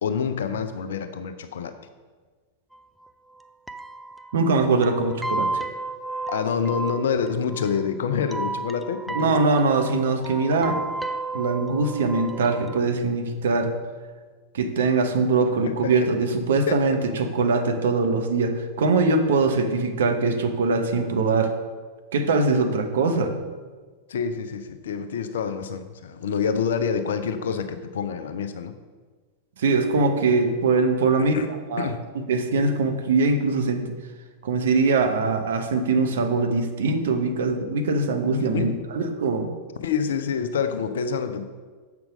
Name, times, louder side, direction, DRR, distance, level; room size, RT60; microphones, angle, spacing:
voice 1, 0.0-1.8 6.3-9.4 15.6-16.1 16.7-17.0 24.1-28.7 31.2-31.5 31.8-32.0 38.5-38.8 39.8-41.4, left 6 dB, 60° left, 9 dB, 0.6 m, -27 dB
sound 1, 2.7-2.8 3.0-3.1 3.4-3.5 3.7-12.8, right 2 dB, ahead, 0.4 m, -33 dB
voice 2, 4.3-5.6 9.1-10.8 11.3-13.8 14.5-21.5 22.1-23.4 29.6-31.4 31.7-31.9 32.1-33.9 34.4-39.5, right 3 dB, 60° right, 6 dB, 0.9 m, -22 dB
7.4 x 5.9 x 5.0 m, 1.4 s
figure-of-eight pair, 90°, 0 cm